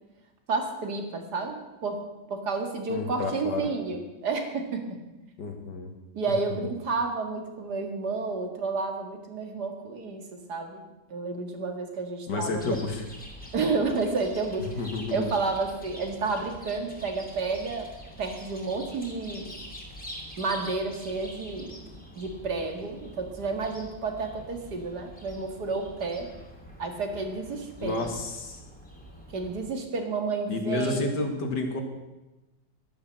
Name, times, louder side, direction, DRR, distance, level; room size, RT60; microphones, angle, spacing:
voice 1, 0.5-2.0 2.3-5.0 6.1-10.8 11.1-12.8 13.5-17.9 18.2-19.5 20.4-26.3 26.8-28.1 29.3-31.2, right 4 dB, 60° right, 5 dB, 2.4 m, -31 dB
voice 2, 2.9-3.7 5.4-5.9 12.3-13.0 14.6-15.3 27.8-28.6 30.5-31.8, left 3 dB, 65° left, 4 dB, 2.5 m, -30 dB
Chirp tweet, 12.5-29.7, equal, 5° left, 2.7 m, -45 dB
11.5 x 11.5 x 7.4 m, 1.1 s
omnidirectional pair, 2.0 m